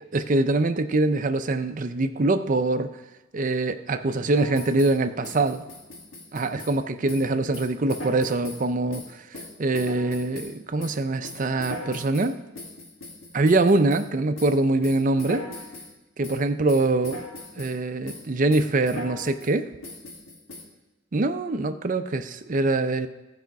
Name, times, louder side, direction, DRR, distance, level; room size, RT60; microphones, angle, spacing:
voice 1, 0.1-2.9 3.3-5.6 6.3-9.2 9.6-12.4 13.3-15.4 16.2-17.2 17.6-19.7 21.1-23.1, right 2 dB, 40° right, 8 dB, 0.5 m, -24 dB
sound 1, 4.3-5.0 5.2-6.8 7.1-7.3 7.5-8.6 8.9-10.5 10.8-14.1 14.4-14.6 14.8-15.9 16.2-16.4 16.7-17.8 18.1-18.3 18.5-19.5 19.8-20.6, left 1 dB, 85° left, 2.1 m, -39 dB
14.5 x 5.0 x 4.6 m, 1.1 s
head